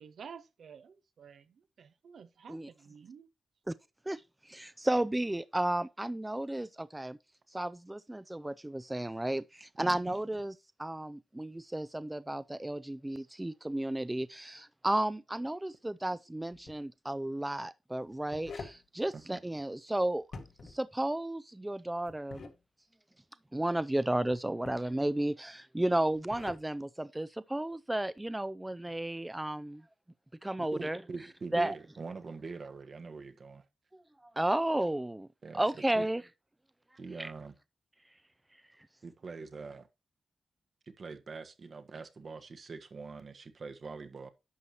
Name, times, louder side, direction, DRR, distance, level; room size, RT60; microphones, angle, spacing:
voice 1, 0.0-1.5 1.8-3.3, right 6 dB, 80° right, 0.8 m, -51 dB
voice 2, 4.1-7.2 7.5-10.5 10.8-20.3 20.6-22.5 23.5-29.8 30.4-31.0 31.5-31.7 33.9-35.3 35.5-36.2 37.2-37.3, right 1 dB, 15° right, 0.4 m, -33 dB
voice 3, 9.8-10.2 19.1-19.4 30.6-33.6 35.4-35.6 35.9-36.1 37.0-37.5 39.0-39.9 40.9-44.3, right 4 dB, 60° right, 1.3 m, -44 dB
sound 1, 16.5-16.8 18.0-18.8 20.2-20.8 22.1-22.6 24.3-24.9 26.0-26.7, left 4 dB, 75° left, 1.6 m, -47 dB
11.0 x 6.2 x 2.9 m
cardioid pair, 60°, 0 cm